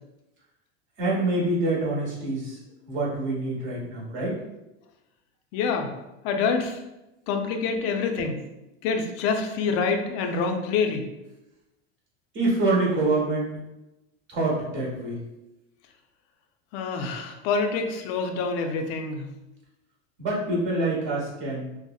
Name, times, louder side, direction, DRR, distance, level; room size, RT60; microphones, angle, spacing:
voice 1, 1.0-2.6 2.9-4.4 12.3-13.5 14.3-15.2 20.2-21.7, right 2 dB, 35° right, -4 dB, 1.1 m, -26 dB
voice 2, 5.5-5.9 6.2-6.8 7.3-8.4 8.8-11.1 16.7-19.3, left 5 dB, 45° left, 4 dB, 0.4 m, -26 dB
2.7 x 2.0 x 2.2 m, 0.95 s
supercardioid pair, 110°, 33 cm